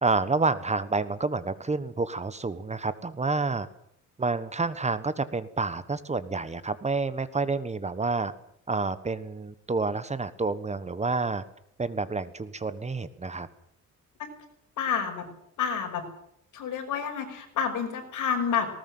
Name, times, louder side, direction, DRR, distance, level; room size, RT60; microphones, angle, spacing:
voice 1, 0.0-3.7 4.2-8.3 8.7-11.4 11.8-13.5, right 3 dB, 20° right, 14 dB, 1.3 m, -29 dB
voice 2, 14.8-15.3 15.6-16.0 16.5-18.7, left 7 dB, 75° left, 4 dB, 5.7 m, -29 dB
19.5 x 19.0 x 7.8 m, 0.73 s
cardioid pair, 125°, 31 cm